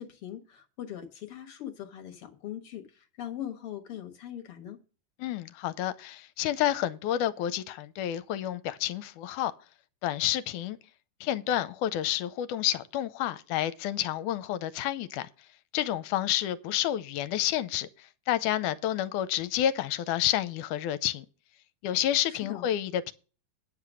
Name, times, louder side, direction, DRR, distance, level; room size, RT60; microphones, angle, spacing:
voice 1, 0.0-4.8 22.3-22.7, left 11 dB, 55° left, 1.9 m, -41 dB
voice 2, 5.2-9.5 10.0-10.8 11.2-15.3 15.7-17.9 18.3-21.3 21.8-23.1, left 12 dB, 80° left, 2.1 m, -29 dB
10.0 x 6.7 x 6.1 m
omnidirectional pair, 3.7 m